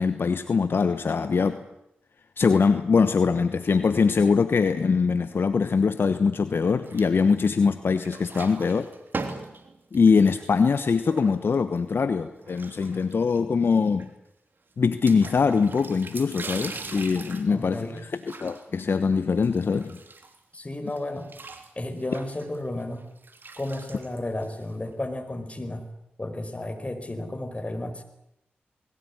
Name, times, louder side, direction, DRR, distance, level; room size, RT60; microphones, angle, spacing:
voice 1, 0.0-1.6 2.4-8.9 9.9-14.1 14.8-17.9 18.3-20.0, left 5 dB, 65° left, 11 dB, 1.1 m, -22 dB
sound 1, 6.8-7.7 7.9-11.8 12.4-13.4 13.7-13.8 14.0-14.1 15.1-20.5 20.9-24.9, right 3 dB, 55° right, 3.2 m, -41 dB
voice 2, 17.5-18.0 20.5-21.3 21.7-23.1 23.6-25.9 26.2-28.0, left 1 dB, 30° left, 7 dB, 5.0 m, -33 dB
21.0 x 18.0 x 9.8 m, 0.82 s
cardioid pair, 40°, 4 cm